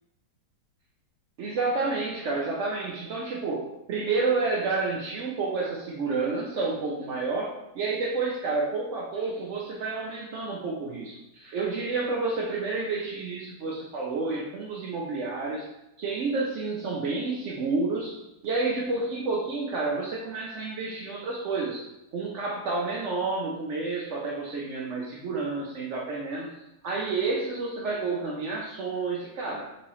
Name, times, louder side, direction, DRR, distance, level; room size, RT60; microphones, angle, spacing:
voice 1, 1.4-15.7 16.0-21.9 22.1-26.5 26.8-29.7, right 3 dB, 75° right, -2 dB, 0.6 m, -30 dB
4.0 x 2.7 x 3.0 m, 0.88 s
omnidirectional pair, 1.8 m